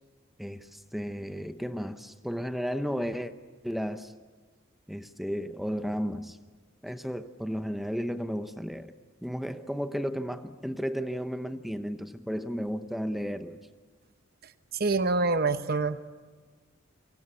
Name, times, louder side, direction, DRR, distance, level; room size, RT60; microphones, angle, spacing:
voice 1, 0.4-3.3 3.6-4.1 4.9-6.4 6.8-8.9 9.2-13.6, equal, ahead, 9 dB, 0.9 m, -33 dB
voice 2, 14.7-16.1, right 3 dB, 50° right, 10 dB, 0.9 m, -26 dB
28.0 x 25.0 x 8.4 m, 1.4 s
head